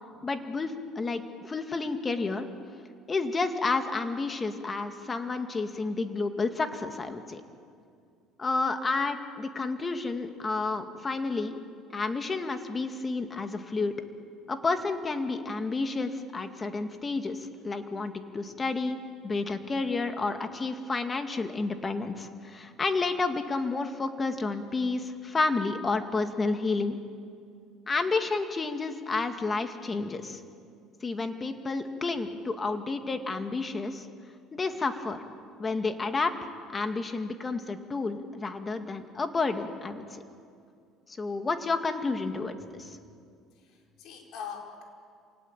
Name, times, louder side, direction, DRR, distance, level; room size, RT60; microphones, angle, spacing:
voice 1, 0.2-2.5 3.1-7.4 8.4-11.6 11.9-13.9 14.5-19.0 19.2-27.0 27.9-30.4 31.0-34.1 34.5-35.2 35.6-40.2 41.1-43.0, left 3 dB, 25° left, 7 dB, 2.0 m, -30 dB
voice 2, 43.5-44.8, left 7 dB, 65° left, 1 dB, 5.0 m, -43 dB
27.0 x 18.5 x 8.9 m, 2.3 s
cardioid pair, 115°, 0 cm